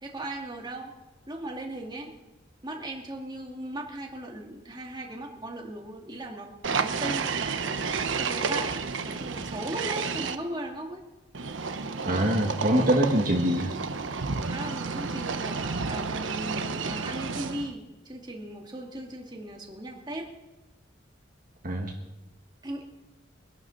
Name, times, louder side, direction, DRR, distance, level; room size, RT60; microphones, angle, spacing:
voice 1, 0.0-0.9 1.3-2.1 2.6-7.3 8.1-8.7 9.0-11.0 14.5-20.3 22.6-22.8, right 1 dB, 20° right, 1 dB, 2.2 m, -37 dB
sound 1, 6.6-10.3 11.3-17.7, right 4 dB, 80° right, 1.0 m, -31 dB
voice 2, 12.0-13.7 21.6-21.9, right 1 dB, 45° right, 0 dB, 1.6 m, -24 dB
24.5 x 11.5 x 4.1 m, 1.1 s
head